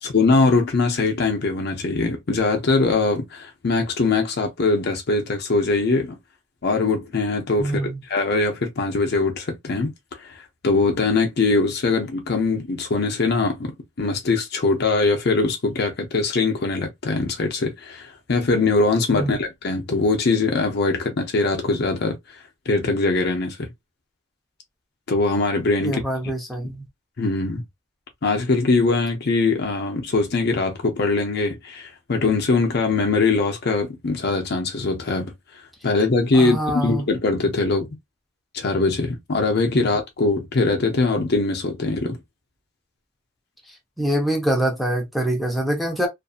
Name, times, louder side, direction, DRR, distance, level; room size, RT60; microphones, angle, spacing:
voice 1, 0.0-6.2 6.6-9.9 10.2-10.3 10.6-13.7 14.0-22.2 22.7-23.7 25.1-26.0 27.2-27.6 28.2-35.3 35.8-37.9 38.5-42.2, left 3 dB, 55° left, 0.7 m, -22 dB
voice 2, 7.6-8.0 19.1-19.4 25.8-26.8 36.3-37.1 39.7-39.8 44.0-46.1, right 1 dB, ahead, 0.8 m, -24 dB
2.6 x 2.5 x 2.3 m
head